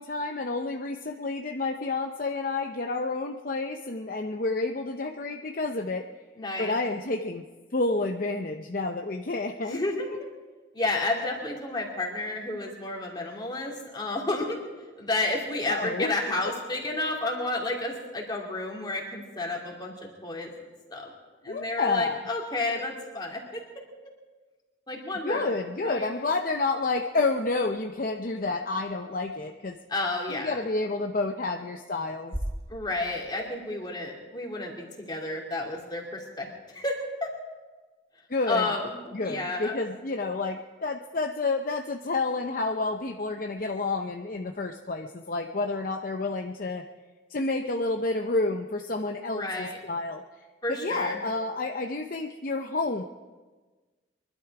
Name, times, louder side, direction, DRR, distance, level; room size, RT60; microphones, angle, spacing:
voice 1, 0.0-6.1 6.6-7.4 7.7-10.0 15.7-16.1 21.5-22.3 25.2-29.8 30.3-32.3 38.3-38.7 39.1-46.8 47.3-50.2 50.7-53.0, left 3 dB, 45° left, 4 dB, 0.7 m, -29 dB
voice 2, 6.4-6.8 9.6-10.1 10.7-14.6 15.0-20.5 20.9-21.1 21.4-23.6 24.9-25.5 25.8-26.1 29.9-30.6 32.7-36.5 36.7-37.3 38.5-39.8 49.2-49.8 50.6-51.2, left 2 dB, 25° left, -1 dB, 2.8 m, -31 dB
sound 1, 32.3-34.4, equal, 20° right, 1.4 m, -38 dB
23.5 x 12.0 x 4.9 m, 1.3 s
head